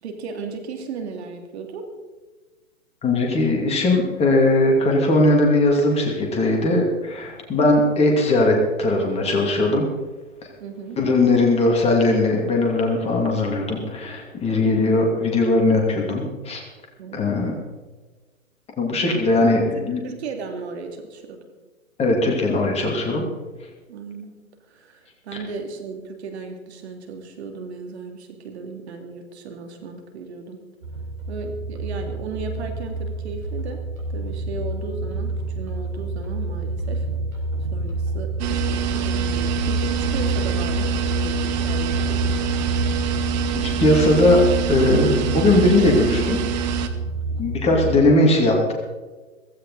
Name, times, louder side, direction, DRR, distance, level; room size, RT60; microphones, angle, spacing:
voice 1, 0.0-1.9 10.6-11.0 17.0-17.3 19.3-21.4 23.9-24.4 24.7-30.6 31.3-33.8 34.1-37.1 37.7-42.4 47.7-47.8, right 4 dB, 50° right, 4 dB, 2.8 m, -35 dB
voice 2, 3.0-9.8 11.0-16.6 17.1-17.5 18.8-20.0 22.0-23.2 43.5-44.4 44.7-46.4 47.4-48.7, left 2 dB, 15° left, 0 dB, 2.5 m, -19 dB
sound 1, 30.8-48.1, right 2 dB, 90° right, 5.0 m, -28 dB
sound 2, 38.4-46.9, right 8 dB, 30° right, 1.1 m, -26 dB
16.0 x 15.5 x 4.1 m, 1.3 s
hypercardioid pair, 130°, 41 cm